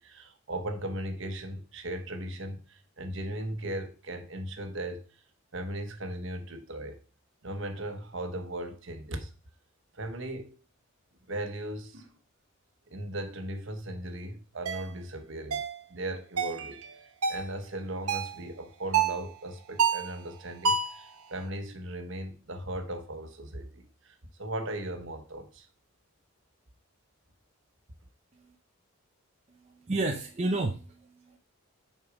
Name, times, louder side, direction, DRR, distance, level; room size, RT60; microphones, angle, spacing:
voice 1, 0.0-5.2 5.5-7.0 7.4-9.3 9.9-10.6 11.3-12.1 12.9-15.6 15.9-25.7, right 1 dB, 60° right, 1.1 m, -37 dB
sound 1, 14.7-14.8 15.5-15.8 16.4-16.6 17.2-17.5 18.1-18.4 18.9-19.2 19.8-20.1 20.6-21.0, right 5 dB, 90° right, 0.9 m, -27 dB
voice 2, 29.6-31.4, right 2 dB, 30° right, 0.5 m, -31 dB
6.4 x 4.3 x 5.0 m
head